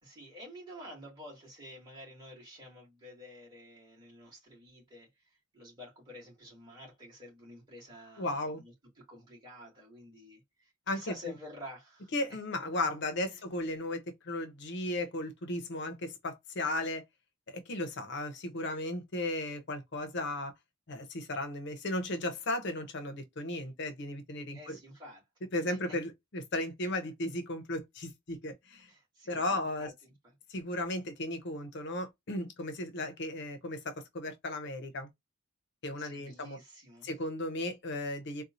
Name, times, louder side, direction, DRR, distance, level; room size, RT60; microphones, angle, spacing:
voice 1, 0.0-12.1 13.3-13.4 24.5-25.2 25.7-25.8 28.9-30.1 36.0-37.1, left 1 dB, 20° right, 2.3 m, -50 dB
voice 2, 8.2-8.6 10.9-11.1 12.1-17.0 17.5-20.5 20.9-24.8 25.5-28.9 29.3-29.9 30.5-35.1 35.8-36.6 37.0-38.4, left 1 dB, 55° left, 0.7 m, -35 dB
4.1 x 2.2 x 2.6 m
head